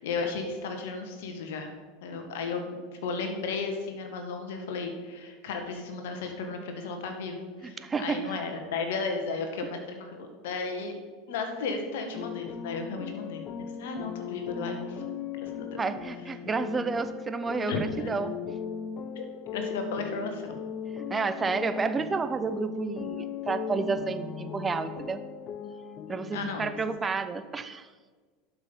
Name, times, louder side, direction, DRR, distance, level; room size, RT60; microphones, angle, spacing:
voice 1, 0.0-1.7 2.0-10.9 11.3-15.0 15.3-15.7 17.7-18.1 19.2-20.6 26.3-26.8 27.0-27.1, left 4 dB, 70° left, 5 dB, 1.8 m, -34 dB
voice 2, 7.6-8.4 15.8-18.4 21.1-25.2 26.1-27.9, right 4 dB, 20° right, 11 dB, 0.8 m, -31 dB
sound 1, 12.1-27.0, left 7 dB, 40° left, 0.7 m, -38 dB
11.5 x 5.9 x 5.6 m, 1.4 s
hypercardioid pair, 85°, 0 cm